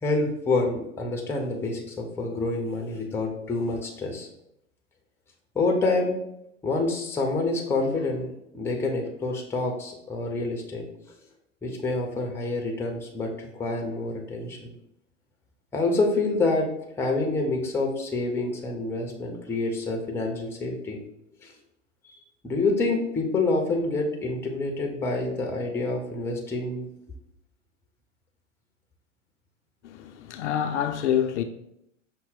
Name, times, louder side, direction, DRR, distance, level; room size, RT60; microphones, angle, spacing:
voice 1, 0.0-4.3 5.5-6.2 6.6-11.1 11.6-14.7 15.7-16.7 17.0-21.0 21.4-21.5 22.0-22.2 22.4-26.9, left 3 dB, 5° left, 0.5 m, -27 dB
voice 2, 29.8-31.4, left 9 dB, 65° left, 0.5 m, -27 dB
5.5 x 2.1 x 4.0 m
hypercardioid pair, 100°, 39 cm